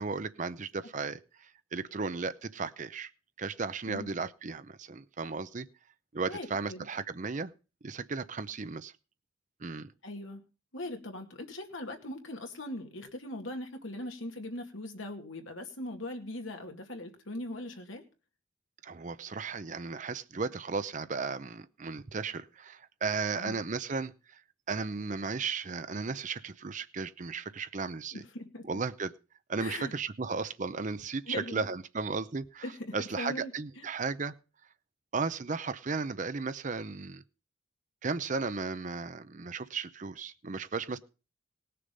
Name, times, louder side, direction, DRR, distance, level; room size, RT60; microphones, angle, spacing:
voice 1, 0.0-3.1 3.4-5.7 6.1-7.5 7.8-8.9 9.6-9.9 18.8-24.4 24.7-28.2 28.7-29.1 29.5-32.6 32.9-34.3 35.1-37.2 38.0-41.0, right 4 dB, 40° right, 13 dB, 0.6 m, -35 dB
voice 2, 6.3-6.8 10.0-10.4 10.7-18.0 23.3-23.6 28.1-28.6 29.6-29.9 31.3-31.7 32.6-33.5 33.8-33.9, left 1 dB, 75° left, 4 dB, 2.2 m, -40 dB
19.0 x 6.7 x 5.3 m, 0.34 s
head